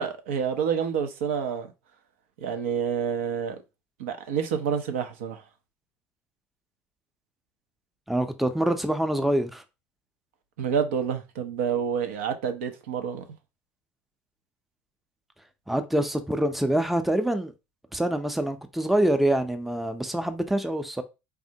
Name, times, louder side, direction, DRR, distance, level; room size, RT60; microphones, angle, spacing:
voice 1, 0.0-1.7 2.4-3.6 4.0-5.4 10.6-13.2, right 7 dB, 85° right, 0.5 m, -28 dB
voice 2, 8.1-9.6 15.7-17.5 17.9-21.0, right 1 dB, ahead, 0.4 m, -25 dB
3.5 x 2.1 x 2.7 m
hypercardioid pair, 80°, 7 cm